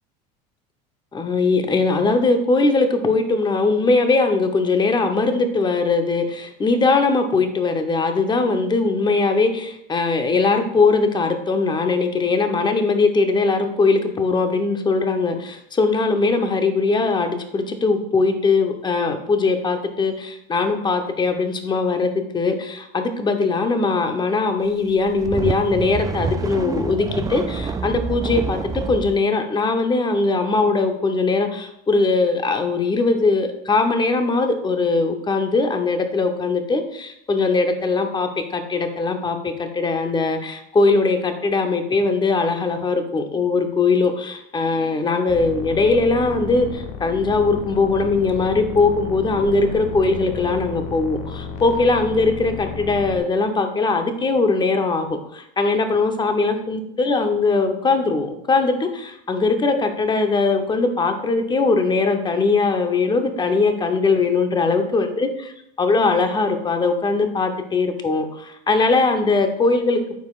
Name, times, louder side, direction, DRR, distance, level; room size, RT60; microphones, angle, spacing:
voice 1, 1.1-65.3 65.8-70.1, left 3 dB, 20° left, 6 dB, 0.9 m, -20 dB
sound 1, 24.9-29.2, right 4 dB, 15° right, 0.4 m, -27 dB
sound 2, 45.3-53.2, left 5 dB, 70° left, 1.0 m, -33 dB
9.2 x 4.3 x 2.5 m, 0.77 s
supercardioid pair, 95°, 21 cm